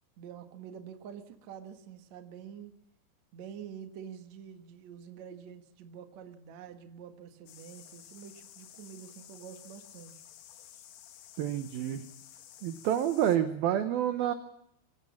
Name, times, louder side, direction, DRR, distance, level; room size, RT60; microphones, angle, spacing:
voice 1, 0.2-2.7 3.3-10.1 10.7-10.8, right 8 dB, 60° right, 6 dB, 1.9 m, -47 dB
sound 1, 7.5-13.4, left 11 dB, 70° left, 3.5 m, -53 dB
voice 2, 11.4-12.0 12.6-14.3, right 10 dB, 75° right, 9 dB, 2.2 m, -28 dB
26.0 x 16.5 x 7.3 m, 0.77 s
omnidirectional pair, 5.5 m